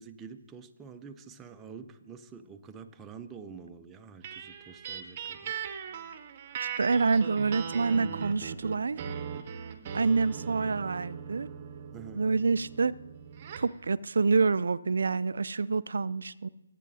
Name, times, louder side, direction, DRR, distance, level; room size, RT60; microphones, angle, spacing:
voice 1, 0.0-5.5 5.8-6.1 11.9-12.3, right 6 dB, 10° right, 6 dB, 0.5 m, -47 dB
sound 1, 4.2-13.8, right 7 dB, 35° right, 0.8 m, -39 dB
voice 2, 6.6-9.0 9.9-11.5 12.1-12.9 13.6-16.5, right 4 dB, 70° right, 16 dB, 0.3 m, -27 dB
17.5 x 8.3 x 2.8 m, 0.96 s
hypercardioid pair, 155°, 0 cm